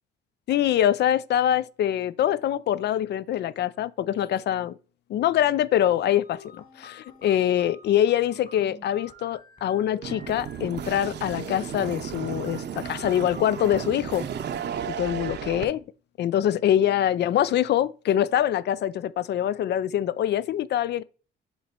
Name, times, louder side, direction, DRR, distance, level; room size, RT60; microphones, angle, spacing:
voice 1, 0.5-4.8 5.1-14.3 15.0-15.8 16.2-21.0, left 11 dB, 60° left, 0.4 m, -24 dB
sound 1, 5.8-13.8, left 1 dB, 40° left, 2.1 m, -48 dB
sound 2, 10.0-15.6, right 8 dB, 60° right, 0.7 m, -34 dB
7.1 x 3.1 x 5.1 m
cardioid pair, 90°, 20 cm